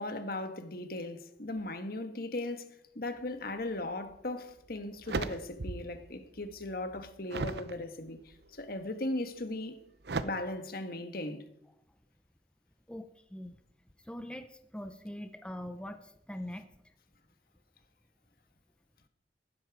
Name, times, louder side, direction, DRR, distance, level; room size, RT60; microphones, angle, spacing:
voice 1, 0.0-2.7 2.9-8.2 8.5-9.8 10.2-11.4, left 2 dB, 55° left, 1.5 m, -37 dB
sound 1, 4.1-4.2 4.7-6.0 6.3-7.7 8.3-8.8 10.0-10.2, right 3 dB, 65° right, 0.7 m, -37 dB
voice 2, 12.9-13.6 14.1-16.6, left 1 dB, 5° left, 0.7 m, -42 dB
15.5 x 12.0 x 4.8 m
head